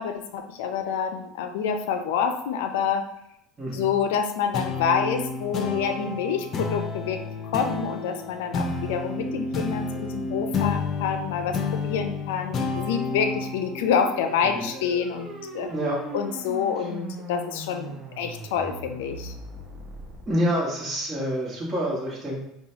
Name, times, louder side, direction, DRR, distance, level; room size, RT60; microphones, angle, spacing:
voice 1, 0.0-3.1 3.7-7.2 7.5-15.7 16.1-19.3, left 7 dB, 85° left, 7 dB, 0.4 m, -27 dB
voice 2, 3.6-3.9 14.4-14.7 15.7-16.0 16.8-16.9 20.2-22.4, equal, 25° right, -6 dB, 1.4 m, -27 dB
sound 1, 4.5-15.4, left 4 dB, 40° left, 0.6 m, -31 dB
sound 2, 13.4-20.3, right 2 dB, 55° right, 1.0 m, -40 dB
5.4 x 2.3 x 2.8 m, 0.80 s
supercardioid pair, 110°, 0 cm